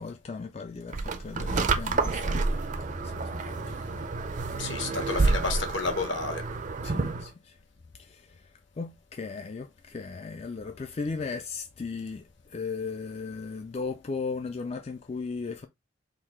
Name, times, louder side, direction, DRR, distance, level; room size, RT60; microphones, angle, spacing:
voice 1, 0.0-4.9 6.8-7.6 7.9-15.7, left 4 dB, 30° left, 0.3 m, -37 dB
sound 1, 0.9-7.3, right 3 dB, 40° right, 0.5 m, -29 dB
voice 2, 4.6-6.4 6.9-7.1, left 4 dB, 65° left, 1.1 m, -31 dB
4.0 x 2.6 x 4.3 m
head